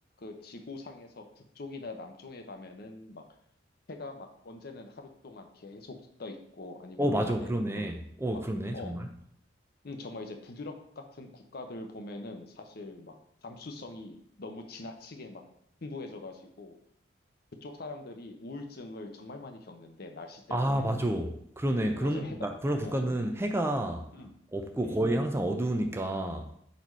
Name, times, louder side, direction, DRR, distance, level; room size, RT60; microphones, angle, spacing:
voice 1, 0.2-3.2 3.9-7.8 8.3-8.4 8.7-8.9 9.8-13.1 13.4-15.4 15.8-16.8 17.6-20.9 22.0-22.4 22.8-23.0 24.1-24.3 24.8-25.1, left 2 dB, 55° left, 5 dB, 0.8 m, -43 dB
voice 2, 7.0-9.1 20.5-24.1 24.5-26.5, right 1 dB, 15° right, 5 dB, 0.5 m, -29 dB
4.6 x 4.2 x 5.4 m, 0.68 s
head